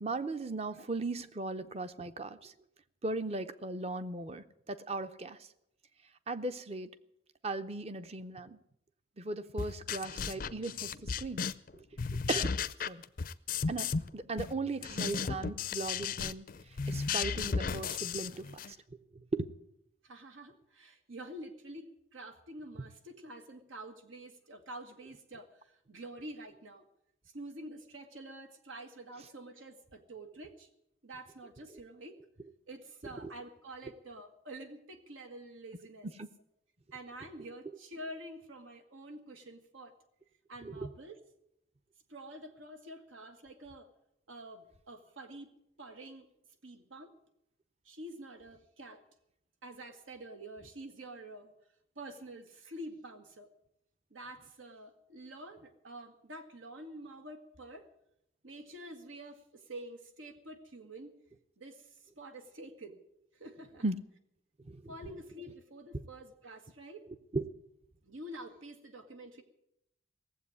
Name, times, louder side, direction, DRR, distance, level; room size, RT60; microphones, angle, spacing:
voice 1, 0.0-2.5 3.0-5.4 6.3-6.9 7.4-8.6 9.2-11.8 12.3-12.5 12.9-13.0 13.7-16.4 16.9-18.8 19.3-19.5 33.2-33.3 36.2-36.3 40.7-40.9 63.8-64.0 64.7-64.8 67.3-67.4, right 3 dB, 30° right, 12 dB, 0.6 m, -37 dB
sound 1, 9.6-11.7 12.0-14.1 14.4-18.7, left 5 dB, 45° left, 0.5 m, -35 dB
voice 2, 20.0-26.8 27.2-30.7 31.0-32.2 32.7-36.1 36.9-39.9 40.5-41.2 42.1-43.9 44.3-45.5 45.8-46.3 46.6-47.1 47.8-49.0 49.6-51.5 51.9-53.5 54.1-57.9 58.4-61.1 61.6-63.0 63.3-63.8 64.9-67.1 68.0-69.4, right 1 dB, 90° right, 6 dB, 1.7 m, -48 dB
18.0 x 7.7 x 9.7 m, 0.80 s
head